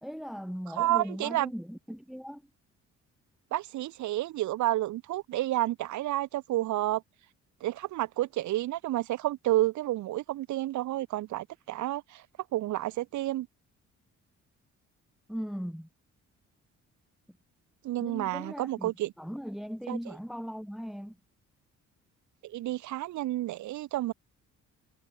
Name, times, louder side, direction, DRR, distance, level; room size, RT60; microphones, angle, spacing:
voice 1, 0.0-2.4 15.3-15.9 18.0-18.9 19.2-21.2, equal, ahead, 2.2 m, -38 dB
voice 2, 0.8-1.5 3.5-7.0 7.6-12.2 12.5-13.5 17.8-19.1 19.9-20.0 22.4-24.1, right 15 dB, 70° right, 0.8 m, -30 dB
cardioid pair, 90°, 30 cm